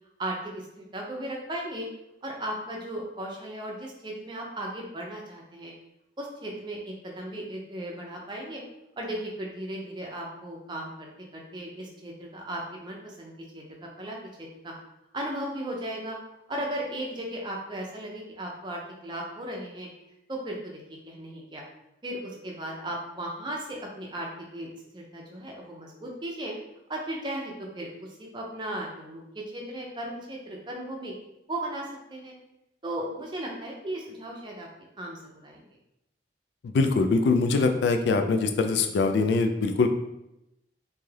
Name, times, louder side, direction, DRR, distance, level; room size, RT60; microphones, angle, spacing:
voice 1, 0.2-1.9 2.2-5.7 6.2-8.6 9.0-13.6 14.0-14.7 15.1-16.2 16.5-19.9 20.3-20.8 21.1-21.6 22.0-26.5 26.9-27.9 28.2-29.2 29.5-31.1 31.5-32.3 32.8-34.7 35.0-35.6, right 1 dB, 25° right, -1 dB, 0.5 m, -36 dB
voice 2, 36.6-39.9, left 4 dB, 70° left, 6 dB, 0.3 m, -23 dB
2.6 x 2.3 x 3.2 m, 0.87 s
head